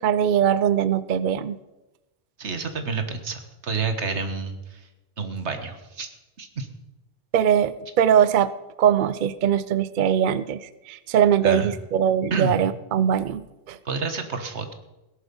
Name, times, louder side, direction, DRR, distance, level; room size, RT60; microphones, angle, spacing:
voice 1, 0.0-1.6 7.3-8.5 8.8-13.8, right 9 dB, 55° right, 15 dB, 0.7 m, -21 dB
voice 2, 2.4-4.9 5.2-6.1 6.4-6.7 11.4-11.7 12.3-12.6 13.9-14.7, right 4 dB, 90° right, 7 dB, 1.8 m, -29 dB
17.5 x 11.0 x 5.4 m, 1.0 s
omnidirectional pair, 1.1 m